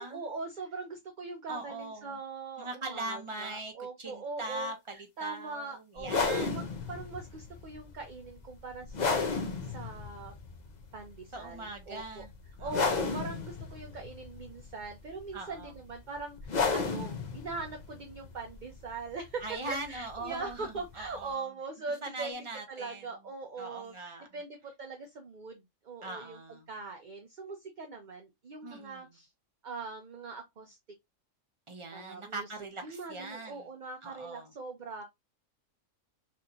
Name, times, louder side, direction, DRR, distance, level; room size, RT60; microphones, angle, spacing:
voice 1, 0.1-4.7 5.2-10.3 10.9-12.2 12.6-22.4 22.7-26.4 26.7-29.3 29.6-30.8 31.9-32.5 32.8-35.0, right 4 dB, 40° right, 0.8 m, -41 dB
voice 2, 1.5-2.2 2.6-3.7 4.0-6.6 11.3-12.3 12.6-13.0 15.3-15.7 19.4-21.5 22.0-23.0 23.6-24.3 26.0-26.7 28.6-29.0 31.7-33.7 34.0-34.5, right 2 dB, 25° right, 1.1 m, -41 dB
sound 1, 6.0-21.3, left 4 dB, 40° left, 0.8 m, -35 dB
6.1 x 2.7 x 2.9 m
omnidirectional pair, 1.4 m